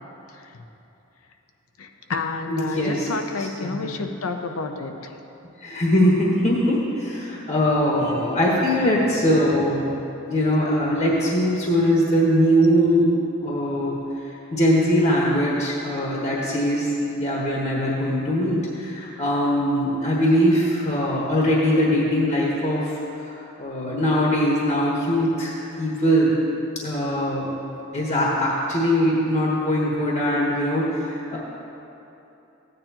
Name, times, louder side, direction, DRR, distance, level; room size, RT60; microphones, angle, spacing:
voice 1, 1.8-5.1, left 3 dB, 80° left, 5 dB, 0.7 m, -30 dB
voice 2, 2.5-3.1 3.4-3.9 5.6-9.9 10.2-13.1 13.4-14.0 14.5-26.4 26.8-27.5 27.9-31.4, equal, 35° left, -4 dB, 1.3 m, -21 dB
15.0 x 9.2 x 2.9 m, 2.9 s
head